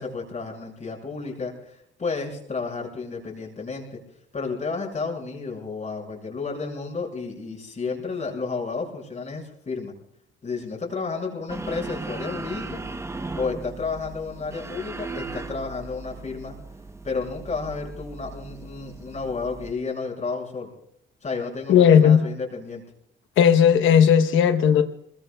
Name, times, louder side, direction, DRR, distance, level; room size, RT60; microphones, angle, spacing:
voice 1, 0.0-4.0 4.3-9.9 10.4-12.8 13.4-16.5 17.0-20.7 21.2-22.8, left 4 dB, 40° left, -1 dB, 6.3 m, -32 dB
sound 1, 11.5-19.7, right 3 dB, 15° right, 0.9 m, -37 dB
voice 2, 21.7-22.2 23.4-24.8, left 8 dB, 85° left, 8 dB, 1.0 m, -15 dB
27.5 x 22.0 x 2.3 m, 0.72 s
cardioid pair, 90°, 20 cm